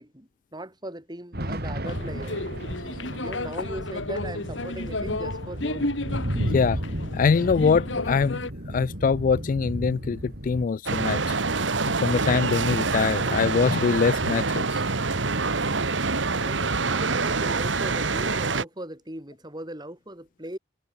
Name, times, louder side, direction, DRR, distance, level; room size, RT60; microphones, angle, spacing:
voice 1, 0.0-2.4 3.2-6.0 16.4-20.6, right 1 dB, 20° right, 6.1 m, -39 dB
sound 1, 1.3-10.6, equal, 55° right, 6.5 m, -33 dB
sound 2, 1.8-8.5, left 2 dB, 75° left, 2.4 m, -33 dB
voice 2, 7.1-8.4 8.7-11.4 12.0-14.8, left 5 dB, 45° left, 0.3 m, -23 dB
sound 3, 10.9-18.6, right 4 dB, 75° right, 1.7 m, -26 dB
head